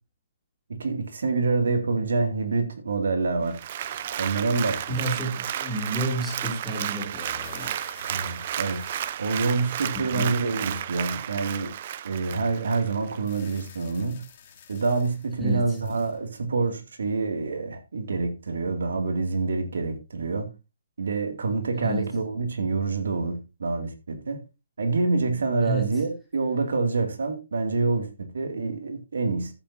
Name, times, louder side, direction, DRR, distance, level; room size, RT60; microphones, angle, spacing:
voice 1, 0.7-3.6 4.2-5.0 8.1-8.8 9.2-11.7 12.0-14.2 14.7-20.5 21.0-24.4 24.8-28.1 28.3-29.5, right 3 dB, 75° right, 2.5 m, -27 dB
Applause, 3.5-13.2 13.7-13.8, right 10 dB, 35° right, 0.4 m, -33 dB
sound 1, 3.8-4.6 5.3-5.4 7.2-10.4 13.2-16.7, left 8 dB, 30° left, 3.0 m, -52 dB
voice 2, 4.9-7.7 9.9-10.3 15.4-15.8 21.8-22.1 25.6-26.0, right 2 dB, ahead, 3.0 m, -30 dB
14.5 x 8.5 x 2.8 m
hypercardioid pair, 170°, 0 cm